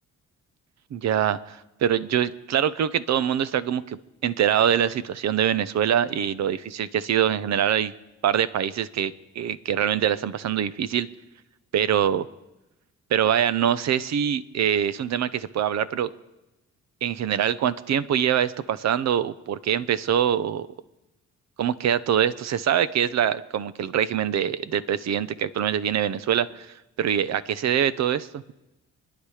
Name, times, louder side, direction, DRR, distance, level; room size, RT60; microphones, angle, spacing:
voice 1, 0.9-7.9 8.2-11.1 11.7-12.3 13.1-16.1 17.0-20.7 21.6-26.7 27.0-28.4, right 9 dB, 60° right, 15 dB, 0.9 m, -24 dB
27.5 x 10.5 x 5.0 m, 0.99 s
cardioid pair, 90°, 30 cm